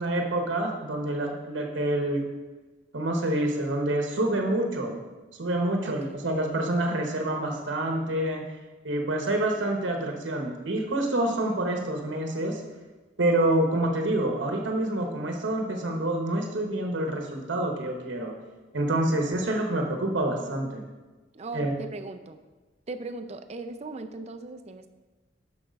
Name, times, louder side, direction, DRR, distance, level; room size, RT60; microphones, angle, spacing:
voice 1, 0.0-2.2 2.9-5.0 5.4-8.4 8.8-12.6 13.2-18.3 18.7-20.8 21.5-21.7, right 1 dB, 75° right, 2 dB, 1.0 m, -27 dB
voice 2, 5.8-6.2 21.3-22.4 22.9-24.9, right 2 dB, 35° right, 8 dB, 0.5 m, -38 dB
6.3 x 5.8 x 5.2 m, 1.2 s
head